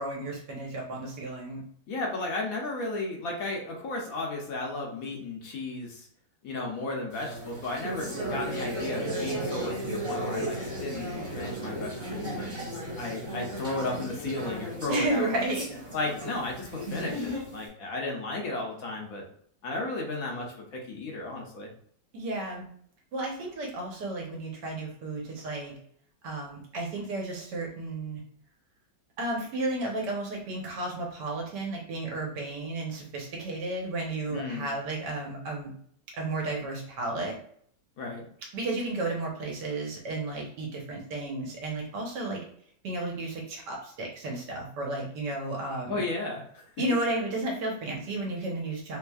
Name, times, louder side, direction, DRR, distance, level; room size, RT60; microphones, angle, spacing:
voice 1, 0.0-1.6 14.9-15.8 22.1-22.7 23.1-25.7 26.2-28.2 29.2-35.7 36.2-37.3 38.5-42.4 42.8-46.0 46.8-49.0, right 2 dB, 70° right, -1 dB, 1.5 m, -33 dB
voice 2, 1.9-6.1 6.4-12.6 13.0-15.3 15.9-19.2 19.6-21.7 34.3-34.7 38.0-38.2 45.9-46.6, left 2 dB, 60° left, 0 dB, 1.0 m, -34 dB
sound 1, 7.1-17.6, right 1 dB, 40° right, 1.7 m, -35 dB
3.4 x 3.1 x 2.3 m, 0.63 s
omnidirectional pair, 2.0 m